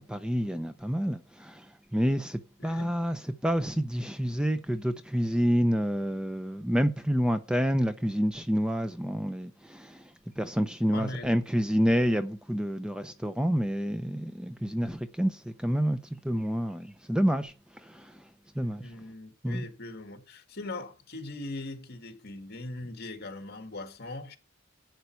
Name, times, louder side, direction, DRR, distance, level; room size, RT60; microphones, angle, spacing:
voice 1, 0.1-10.1 10.4-16.0 16.2-17.5 17.8-18.2 18.6-18.9 19.4-19.6, equal, 5° right, 0.6 m, -28 dB
voice 2, 2.6-3.0 10.9-11.4 18.7-24.4, left 2 dB, 55° left, 2.1 m, -40 dB
11.5 x 8.1 x 4.6 m
head